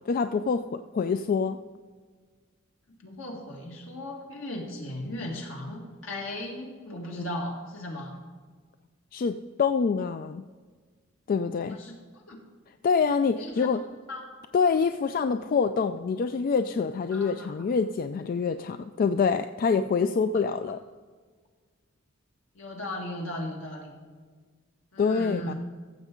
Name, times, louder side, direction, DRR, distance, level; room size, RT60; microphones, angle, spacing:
voice 1, 0.1-1.6 9.1-10.4 11.3-11.8 12.8-13.8 14.5-20.8 25.0-25.5, left 5 dB, 45° left, 9 dB, 0.3 m, -26 dB
voice 2, 3.0-8.2 11.7-12.4 13.4-13.7 14.1-14.2 17.1-17.7 22.5-23.9 24.9-25.5, left 1 dB, 75° left, 0 dB, 2.0 m, -37 dB
14.5 x 7.1 x 3.8 m, 1.5 s
head